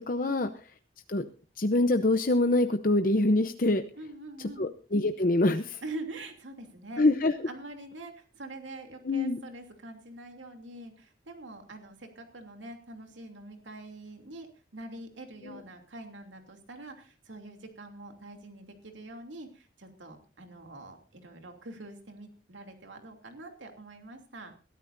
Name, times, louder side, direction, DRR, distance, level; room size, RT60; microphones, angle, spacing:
voice 1, 0.1-0.5 1.1-1.2 1.6-3.8 4.6-5.8 7.0-7.3 9.0-9.4 15.4-15.6, left 2 dB, 45° left, 8 dB, 0.8 m, -25 dB
voice 2, 3.9-4.7 5.8-7.0 7.5-24.5, right 2 dB, 90° right, 4 dB, 2.9 m, -45 dB
21.5 x 13.5 x 2.6 m, 0.35 s
head